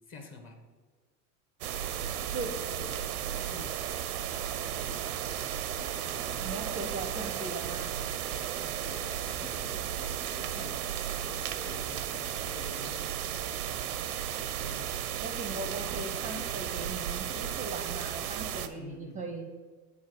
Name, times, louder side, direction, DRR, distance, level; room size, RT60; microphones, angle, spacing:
voice 1, 0.1-0.6 3.4-3.7 4.4-5.2 5.9-6.7 8.6-10.1 10.4-10.8 11.6-13.0 14.3-14.9 15.5-16.4 18.7-19.2, left 3 dB, 30° left, 5 dB, 1.3 m, -50 dB
sound 1, 1.6-18.7, right 10 dB, 80° right, 0.7 m, -34 dB
sound 2, 2.8-4.0 4.3-17.4, left 6 dB, 70° left, 0.9 m, -53 dB
voice 2, 6.4-7.9 15.2-19.5, right 2 dB, 20° right, 4 dB, 0.6 m, -39 dB
7.4 x 4.0 x 6.5 m, 1.5 s
hypercardioid pair, 95°, 43 cm